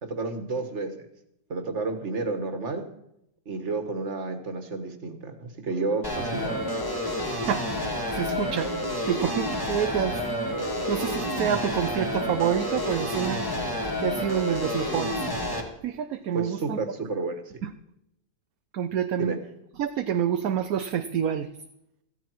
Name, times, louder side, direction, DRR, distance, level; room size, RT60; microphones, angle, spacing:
voice 1, 0.0-0.9 1.5-2.9 3.5-6.6 16.3-17.4 19.2-19.4, right 3 dB, 45° right, 7 dB, 1.9 m, -31 dB
sound 1, 6.0-15.6, left 1 dB, 15° left, 2.2 m, -29 dB
voice 2, 7.5-7.9 8.1-8.7 9.1-10.2 10.9-13.4 14.0-15.1 15.8-16.8 18.7-19.3 19.8-21.5, right 9 dB, 65° right, 8 dB, 1.1 m, -27 dB
15.5 x 14.0 x 4.7 m, 0.79 s
omnidirectional pair, 1.8 m